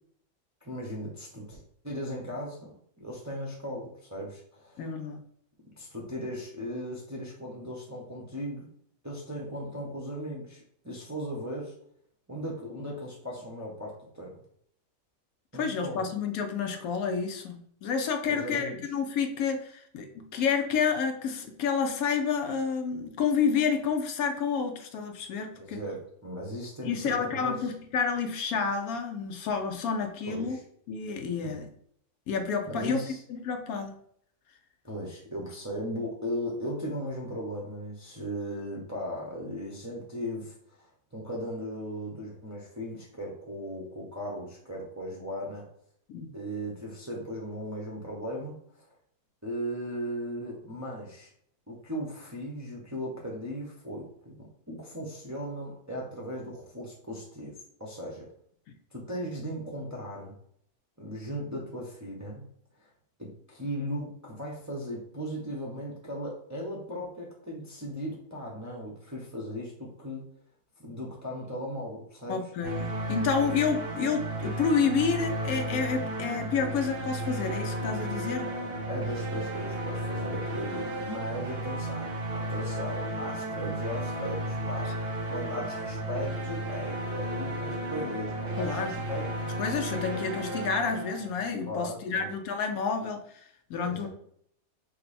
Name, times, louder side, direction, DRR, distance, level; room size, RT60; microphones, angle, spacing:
voice 1, 0.6-4.9 5.8-8.7 9.0-11.7 12.3-14.3 15.5-16.1 18.3-18.8 25.6-27.6 30.3-30.6 31.4-31.6 32.7-33.2 34.8-45.7 46.3-48.9 49.4-51.3 51.7-54.3 54.7-57.5 57.8-58.3 58.9-60.4 61.0-62.4 62.8-62.9 63.2-70.2 70.8-72.4 78.4-78.6 78.9-85.0 85.3-89.2 91.7-92.3 93.8-94.1, equal, 15° right, -3 dB, 0.6 m, -37 dB
voice 2, 4.8-5.2 15.5-25.8 26.8-30.6 30.9-31.7 32.3-33.0 33.3-33.9 46.1-46.3 72.3-78.5 88.6-88.9 89.6-94.1, left 6 dB, 70° left, 5 dB, 1.0 m, -29 dB
sound 1, 72.6-91.5, right 1 dB, 50° right, 0.7 m, -33 dB
5.3 x 2.1 x 4.1 m, 0.66 s
omnidirectional pair, 1.6 m